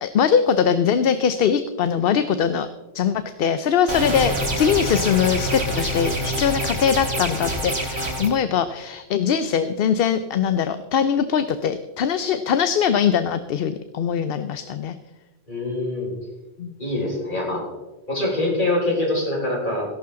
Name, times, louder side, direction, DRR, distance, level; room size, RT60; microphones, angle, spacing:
voice 1, 0.0-2.7 2.9-14.9 16.6-16.7, left 7 dB, 65° left, 11 dB, 0.8 m, -21 dB
sound 1, 3.9-8.3, equal, 80° right, 3.3 m, -26 dB
voice 2, 15.5-16.1 16.8-17.6 18.1-19.9, left 2 dB, 50° left, -3 dB, 5.3 m, -24 dB
17.5 x 11.5 x 3.7 m, 1.2 s
omnidirectional pair, 1.1 m